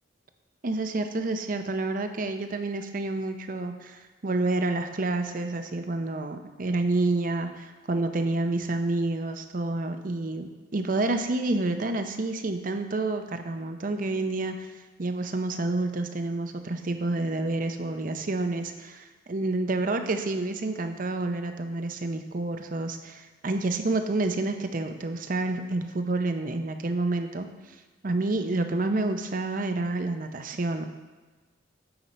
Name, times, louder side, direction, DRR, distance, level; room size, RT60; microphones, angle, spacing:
voice 1, 0.6-14.7 15.0-27.5 28.0-30.9, right 2 dB, 45° right, 7 dB, 0.6 m, -29 dB
8.8 x 5.3 x 4.1 m, 1.3 s
head